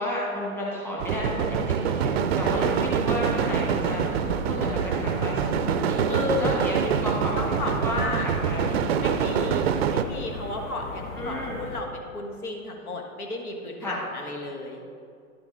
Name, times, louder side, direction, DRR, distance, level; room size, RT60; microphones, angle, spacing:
voice 1, 0.0-6.0 6.4-8.8 9.4-9.7 11.1-11.6 13.8-14.0, equal, 5° left, -5 dB, 1.2 m, -32 dB
sound 1, 1.0-10.0, right 8 dB, 50° right, 0.4 m, -25 dB
sound 2, 1.1-9.9, left 5 dB, 25° left, 0.6 m, -39 dB
sound 3, 2.0-11.8, left 3 dB, 65° left, 1.2 m, -38 dB
voice 2, 6.1-6.6 7.4-8.3 9.0-14.8, left 2 dB, 85° left, 1 dB, 1.6 m, -33 dB
11.0 x 6.0 x 3.9 m, 2.3 s
hypercardioid pair, 140°, 43 cm